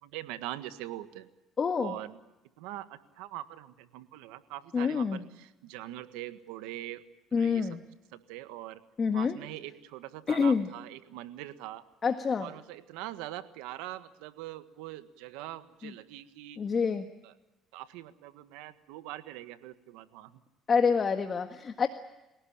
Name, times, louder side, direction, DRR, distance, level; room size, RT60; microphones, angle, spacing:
voice 1, 0.0-1.3 1.8-2.2 2.6-7.0 7.4-7.7 8.1-8.8 9.1-11.8 12.4-16.6 17.2-17.3 17.7-20.4, right 15 dB, 90° right, 11 dB, 1.6 m, -42 dB
voice 2, 1.6-1.9 4.7-5.2 7.3-7.8 9.0-9.4 10.3-10.7 12.0-12.5 15.8-15.9 16.6-17.1 20.7-21.9, left 5 dB, 40° left, 7 dB, 1.7 m, -27 dB
28.5 x 18.0 x 8.8 m, 1.0 s
supercardioid pair, 85°, 0 cm